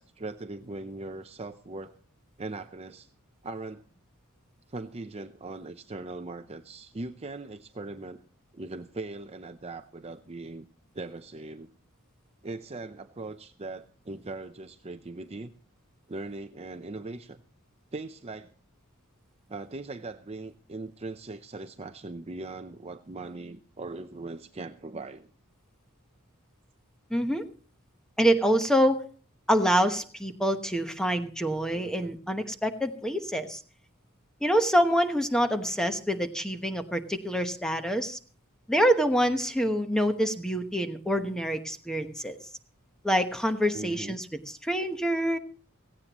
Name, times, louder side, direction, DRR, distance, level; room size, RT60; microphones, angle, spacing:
voice 1, 0.0-1.9 2.4-3.1 3.4-3.8 4.7-8.2 8.5-10.7 10.9-11.7 12.4-15.5 16.1-17.4 17.9-18.5 19.5-25.3 31.7-32.1 43.7-44.2, right 2 dB, 30° right, 8 dB, 0.6 m, -40 dB
voice 2, 27.1-27.4 28.2-29.0 29.5-33.6 34.4-38.2 38.7-42.4 43.0-44.3 44.6-45.4, equal, 5° left, 7 dB, 1.1 m, -26 dB
17.0 x 16.0 x 3.0 m, 0.38 s
head